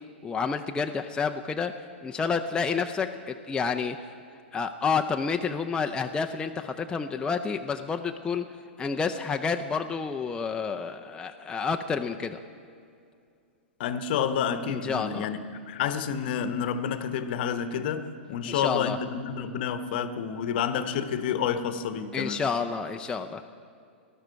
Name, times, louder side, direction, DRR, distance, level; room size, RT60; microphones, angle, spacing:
voice 1, 0.2-1.7 2.0-4.0 4.5-8.5 8.8-12.4 14.7-15.3 18.5-19.0 22.1-23.4, left 5 dB, 15° left, 5 dB, 0.5 m, -29 dB
voice 2, 13.8-15.4 15.7-22.4, left 7 dB, 55° left, 11 dB, 0.9 m, -29 dB
18.5 x 12.0 x 4.6 m, 2.3 s
hypercardioid pair, 110°, 6 cm